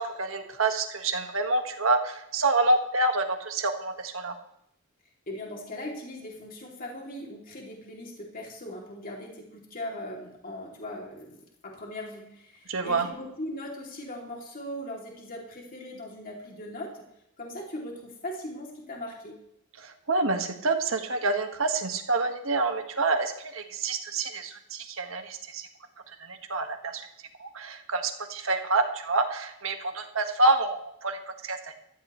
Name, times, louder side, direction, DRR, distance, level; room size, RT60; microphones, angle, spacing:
voice 1, 0.0-4.3 12.7-13.1 19.8-25.7 26.2-27.1 27.4-31.7, right 2 dB, 70° right, 5 dB, 1.7 m, -27 dB
voice 2, 5.3-17.1 17.4-19.4, left 1 dB, 40° left, -1 dB, 2.8 m, -39 dB
16.0 x 13.5 x 3.2 m, 0.79 s
head